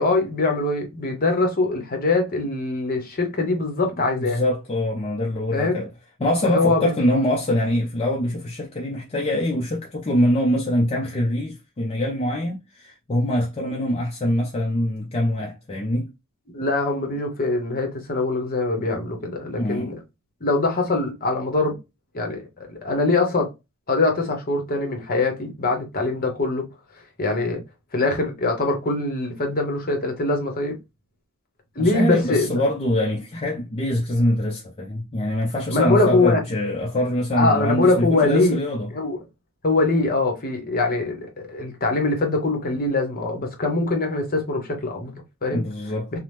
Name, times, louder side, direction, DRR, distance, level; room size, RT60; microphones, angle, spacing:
voice 1, 0.0-4.4 5.5-5.8 6.4-6.9 16.5-19.9 20.4-21.7 22.1-23.5 23.9-26.7 27.2-27.6 27.9-30.8 31.8-32.6 35.7-36.4 37.3-38.6 38.9-39.2 39.6-45.6 46.1-46.2, left 2 dB, 45° left, 0.9 m, -23 dB
voice 2, 4.2-5.9 6.2-16.1 19.6-19.9 31.8-38.9 45.5-46.2, left 1 dB, 30° left, 0.4 m, -24 dB
2.9 x 2.0 x 3.2 m
head